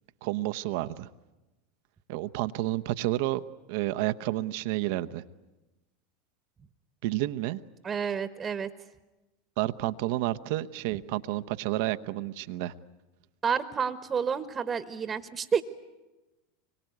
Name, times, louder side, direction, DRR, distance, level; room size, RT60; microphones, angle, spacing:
voice 1, 0.2-1.1 2.1-3.4 3.7-5.2 7.0-7.6 9.6-12.7, right 16 dB, 65° right, 12 dB, 0.9 m, -30 dB
voice 2, 7.8-8.7 13.4-15.6, right 6 dB, 25° right, 11 dB, 1.3 m, -29 dB
25.0 x 23.0 x 9.4 m, 1.1 s
hypercardioid pair, 90°, 0 cm